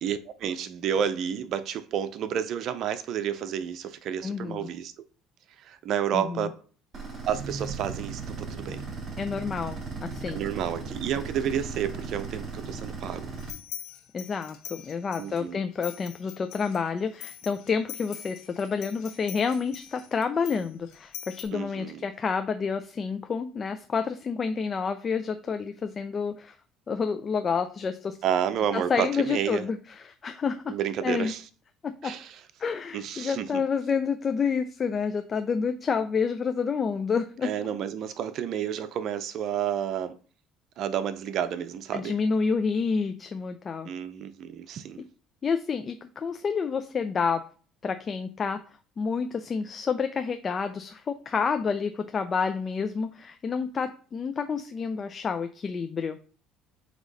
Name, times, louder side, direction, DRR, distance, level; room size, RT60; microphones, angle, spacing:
voice 1, 0.0-4.9 5.6-6.6 7.3-8.8 10.3-13.3 15.2-15.6 21.5-22.0 28.2-29.7 30.7-31.4 32.0-32.4 32.9-33.6 37.4-40.2 40.8-42.1 43.8-45.0, right 9 dB, 60° right, 0.7 m, -30 dB
voice 2, 4.2-4.7 6.1-6.5 9.2-9.8 10.0-10.5 14.1-26.5 26.9-28.2 28.7-30.7 31.0-31.3 31.8-32.1 32.6-37.5 41.9-43.9 45.4-47.4 47.8-48.6 49.0-56.2, left 5 dB, 35° left, 0.5 m, -29 dB
sound 1, 6.9-13.5, right 4 dB, 40° right, 2.7 m, -37 dB
sound 2, 13.4-15.4 15.8-21.4, left 12 dB, 70° left, 1.2 m, -43 dB
7.7 x 3.1 x 4.1 m
supercardioid pair, 90°, 0 cm